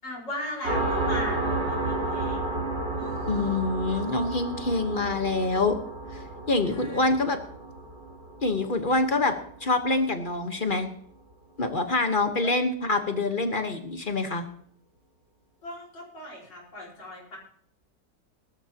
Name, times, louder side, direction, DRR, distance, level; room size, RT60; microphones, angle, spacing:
voice 1, 0.0-2.6 2.9-3.7 6.7-7.2 15.6-17.4, left 1 dB, 80° left, -3 dB, 5.5 m, -39 dB
sound 1, 0.6-9.9, right 2 dB, 80° right, 4.8 m, -32 dB
voice 2, 3.3-5.8 6.1-7.4 8.4-10.9 11.6-14.5, left 2 dB, 35° left, 6 dB, 1.1 m, -26 dB
20.5 x 13.0 x 2.9 m, 0.63 s
omnidirectional pair, 1.9 m